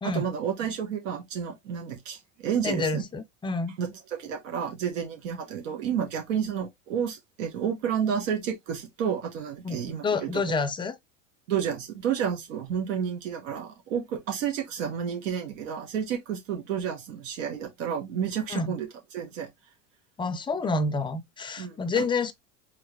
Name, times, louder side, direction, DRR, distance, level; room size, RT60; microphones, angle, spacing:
voice 1, 0.0-3.0 3.8-3.9 4.2-10.4 11.5-18.9 19.1-19.5 21.6-22.0, right 8 dB, 85° right, 1.4 m, -30 dB
voice 2, 2.6-3.7 9.6-9.8 10.0-11.0 18.5-18.8 20.2-22.3, left 3 dB, 15° left, 0.4 m, -28 dB
3.7 x 3.2 x 3.1 m
supercardioid pair, 120°, 37 cm